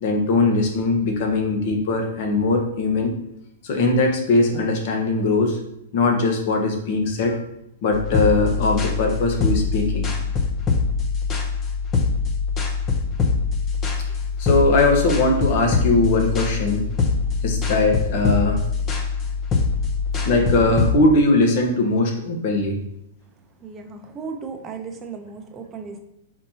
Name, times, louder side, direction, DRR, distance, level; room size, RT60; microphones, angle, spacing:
voice 1, 0.0-3.1 3.6-5.6 5.9-7.4 7.8-10.1 14.4-16.8 17.4-18.6 20.2-22.8, left 2 dB, 50° left, 2 dB, 1.1 m, -20 dB
sound 1, 7.9-20.9, left 4 dB, 25° left, 0.6 m, -23 dB
voice 2, 23.6-26.0, right 5 dB, 20° right, 4 dB, 0.6 m, -35 dB
4.4 x 4.2 x 2.8 m, 0.80 s
hypercardioid pair, 145°, 0 cm